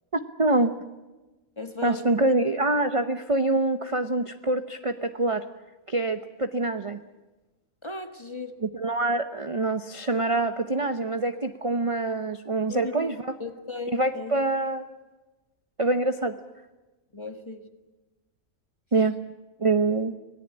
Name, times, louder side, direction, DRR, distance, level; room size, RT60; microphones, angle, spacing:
voice 1, 0.4-0.7 1.8-5.4 5.9-7.0 8.6-13.3 13.9-14.8 15.8-16.4 18.9-19.2 19.6-20.1, right 2 dB, 30° right, 9 dB, 0.8 m, -25 dB
voice 2, 1.6-2.3 7.8-8.6 12.7-13.1 13.4-14.4 17.1-17.7, left 3 dB, 20° left, 8 dB, 1.6 m, -36 dB
26.0 x 18.5 x 8.8 m, 1.1 s
omnidirectional pair, 1.5 m